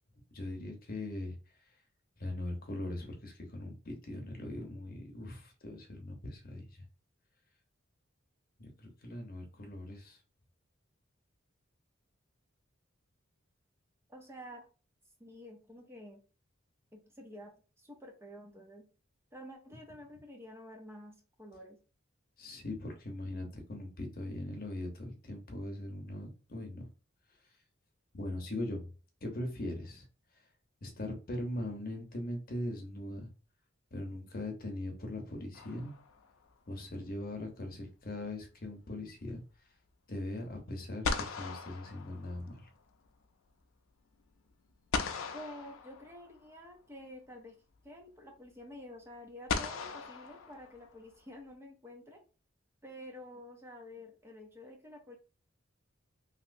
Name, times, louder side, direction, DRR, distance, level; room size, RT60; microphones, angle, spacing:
voice 1, 0.3-1.4 2.2-6.8 8.6-10.2 22.4-26.8 28.1-28.9 29.2-30.1 30.8-33.3 33.9-35.9 36.7-39.4 40.1-42.7, left 1 dB, 45° left, 3 dB, 0.8 m, -40 dB
voice 2, 14.1-14.7 15.2-16.2 16.9-18.9 19.3-21.8 45.3-47.6 47.8-52.2 52.8-55.2, left 1 dB, 15° right, 2 dB, 0.5 m, -50 dB
sound 1, 35.5-36.4 40.5-40.6 41.0-42.8 44.9-46.5 47.8-47.9 49.5-51.1, left 5 dB, 90° left, 0.5 m, -38 dB
3.0 x 2.8 x 2.6 m, 0.35 s
head